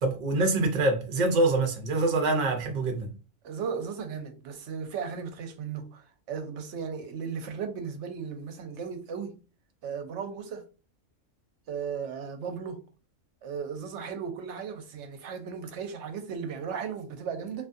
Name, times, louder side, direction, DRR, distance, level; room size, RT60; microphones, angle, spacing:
voice 1, 0.0-3.1, right 2 dB, 50° right, 0.6 m, -25 dB
voice 2, 3.4-9.4 9.8-10.6 11.7-12.8 13.4-17.7, right 6 dB, 70° right, 0.9 m, -36 dB
2.5 x 2.4 x 2.5 m
omnidirectional pair, 1.3 m